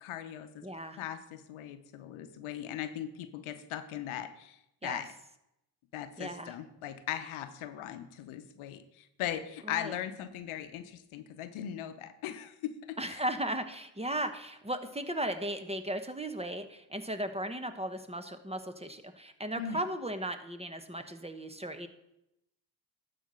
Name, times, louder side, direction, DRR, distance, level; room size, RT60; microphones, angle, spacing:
voice 1, 0.0-0.6 1.0-4.6 4.8-5.1 5.9-8.8 9.2-13.2 19.6-19.8, left 10 dB, 80° left, 10 dB, 0.9 m, -39 dB
voice 2, 0.6-1.0 4.8-5.0 6.2-6.5 9.6-9.9 13.0-21.9, right 1 dB, 15° right, 9 dB, 1.1 m, -36 dB
12.0 x 4.3 x 6.3 m, 0.84 s
supercardioid pair, 55°, 48 cm